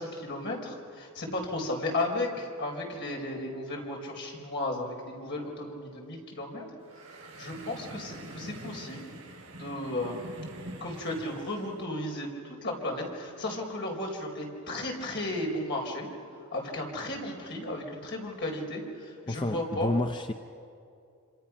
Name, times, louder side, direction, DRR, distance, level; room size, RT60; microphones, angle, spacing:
voice 1, 0.0-6.6 7.4-9.1 9.6-10.2 10.8-16.1 16.5-19.9, left 1 dB, 50° left, 0 dB, 4.3 m, -34 dB
sound 1, 6.8-11.8, right 1 dB, 70° right, 5.8 m, -45 dB
voice 2, 19.3-20.3, left 2 dB, 20° left, 7 dB, 0.5 m, -30 dB
27.0 x 26.0 x 5.9 m, 2.4 s
head